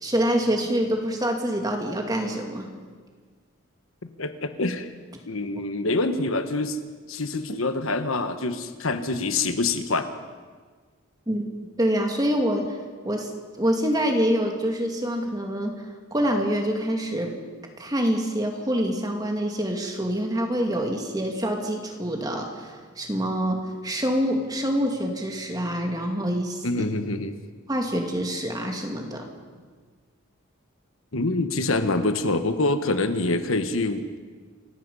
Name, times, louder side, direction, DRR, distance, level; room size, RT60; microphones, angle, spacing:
voice 1, 0.0-2.7 11.3-11.5 11.8-12.7 13.0-13.3 13.6-15.7 16.1-17.3 17.8-26.8 27.7-29.3, equal, 20° right, 2 dB, 2.4 m, -26 dB
voice 2, 4.2-4.9 5.3-6.8 7.1-10.1 26.6-27.3 31.1-34.1, left 2 dB, 75° left, 9 dB, 1.3 m, -25 dB
28.5 x 16.0 x 5.6 m, 1.5 s
head